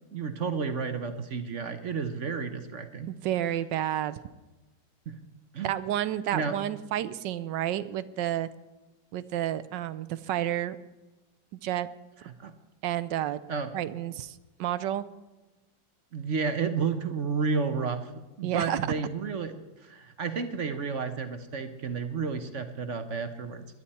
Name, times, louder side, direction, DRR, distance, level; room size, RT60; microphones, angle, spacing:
voice 1, 0.1-3.1 5.1-5.2 5.5-5.7 6.3-6.6 12.4-12.5 13.5-13.7 16.1-18.1 18.4-19.6 19.8-23.7, right 5 dB, 50° right, 8 dB, 1.1 m, -31 dB
voice 2, 3.1-4.2 5.6-8.5 9.1-10.8 11.6-11.9 12.8-13.4 13.7-15.1 18.4-18.8, right 12 dB, 75° right, 15 dB, 1.3 m, -30 dB
21.5 x 11.0 x 4.3 m, 1.1 s
omnidirectional pair, 2.0 m